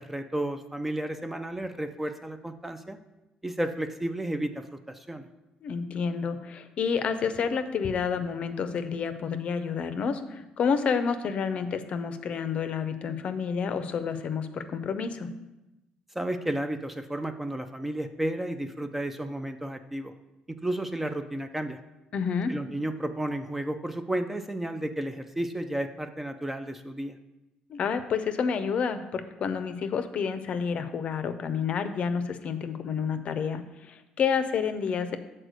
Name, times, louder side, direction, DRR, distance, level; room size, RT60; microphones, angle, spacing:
voice 1, 0.0-3.0 3.4-5.3 16.1-20.1 20.5-21.8 22.5-27.1, right 1 dB, 10° right, 8 dB, 0.4 m, -32 dB
voice 2, 5.6-15.3 22.1-22.5 27.7-35.2, left 6 dB, 50° left, 10 dB, 0.5 m, -29 dB
6.6 x 4.3 x 6.2 m, 0.99 s
cardioid pair, 130°, 3 cm